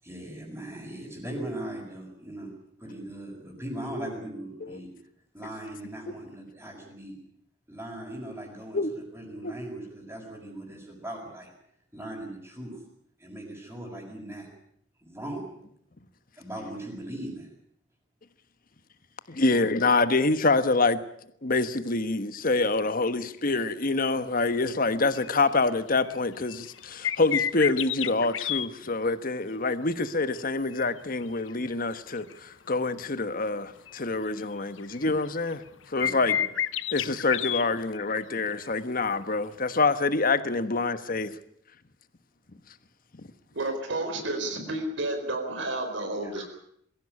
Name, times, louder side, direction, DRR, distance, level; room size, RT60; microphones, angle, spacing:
voice 1, 0.0-2.5 2.8-4.9 5.3-7.1 7.7-11.5 11.9-12.8 13.2-14.5 15.0-15.5 16.3-17.5 35.9-36.4 46.2-46.5, right 1 dB, 10° right, 6.4 m, -39 dB
voice 2, 19.3-21.0 21.4-35.6 35.9-36.4 36.9-41.3, left 3 dB, 50° left, 1.3 m, -26 dB
sound 1, 25.2-25.5 25.9-28.7 30.7-31.9 32.3-32.4 33.9-34.0 34.5-35.7 36.0-38.2 38.5-38.6 40.1-40.2, left 10 dB, 85° left, 0.9 m, -30 dB
voice 3, 43.5-46.4, right 2 dB, 75° right, 4.5 m, -31 dB
22.5 x 16.0 x 9.8 m
head